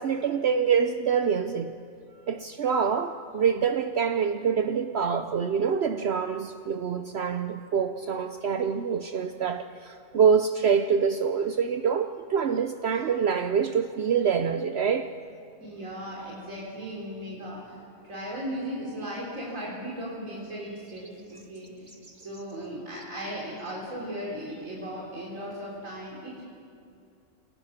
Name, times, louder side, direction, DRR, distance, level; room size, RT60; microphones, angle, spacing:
voice 1, 0.0-1.7 2.3-15.1, right 6 dB, 60° right, 8 dB, 0.9 m, -25 dB
voice 2, 15.6-17.8 18.1-21.9 22.2-26.4, equal, 85° right, -4 dB, 4.0 m, -37 dB
26.0 x 18.0 x 5.8 m, 2.5 s
omnidirectional pair, 1.3 m